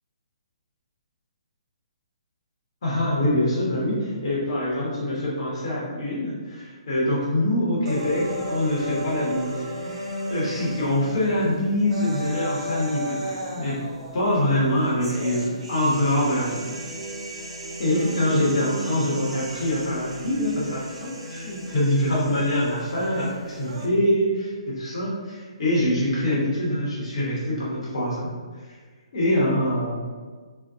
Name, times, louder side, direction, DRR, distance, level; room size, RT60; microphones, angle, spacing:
voice 1, 2.8-13.8 14.1-16.8 17.8-28.3 29.1-30.0, left 1 dB, 60° left, -6 dB, 0.9 m, -24 dB
sound 1, 7.9-23.9, right 1 dB, 70° right, 0.5 m, -34 dB
2.6 x 2.1 x 2.4 m, 1.5 s
hypercardioid pair, 150°, 3 cm